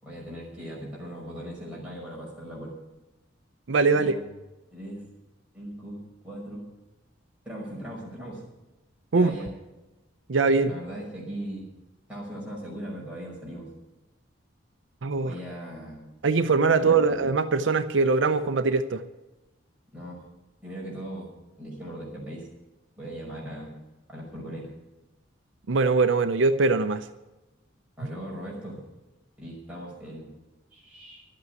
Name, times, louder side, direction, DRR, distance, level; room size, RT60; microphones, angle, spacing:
voice 1, 0.0-2.7 3.9-4.2 4.7-5.0 5.5-6.6 7.4-8.4 9.1-9.5 10.6-11.7 12.1-13.7 15.2-16.1 16.7-17.2 19.9-20.2 20.6-21.3 21.6-22.5 23.0-23.8 24.1-24.7 28.0-28.9 29.4-30.3 30.7-31.2, equal, 5° right, -5 dB, 5.7 m, -39 dB
voice 2, 3.7-4.1 9.1-9.3 10.3-10.7 15.0-15.3 16.2-19.0 25.7-27.1, right 4 dB, 70° right, 10 dB, 0.6 m, -22 dB
12.0 x 8.5 x 9.5 m, 1.0 s
head